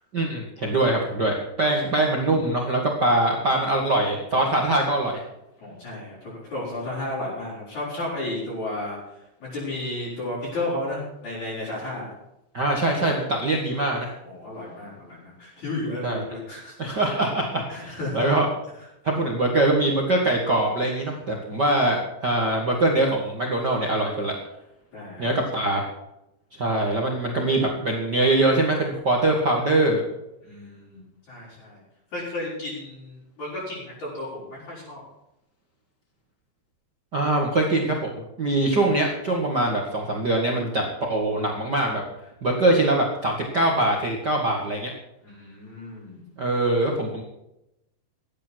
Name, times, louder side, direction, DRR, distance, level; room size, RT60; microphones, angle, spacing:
voice 1, 0.1-5.2 12.5-14.1 16.0-16.2 16.8-18.4 19.0-24.3 25.2-25.8 26.6-30.0 37.1-42.0 42.4-44.9 46.4-47.2, right 2 dB, 85° right, 0 dB, 0.9 m, -23 dB
voice 2, 5.6-9.0 9.4-12.2 14.2-16.9 17.7-18.3 24.9-25.7 30.4-31.8 32.1-35.0 45.2-46.2, left 1 dB, 40° left, -8 dB, 6.7 m, -33 dB
16.0 x 11.5 x 4.6 m, 0.86 s
omnidirectional pair, 5.3 m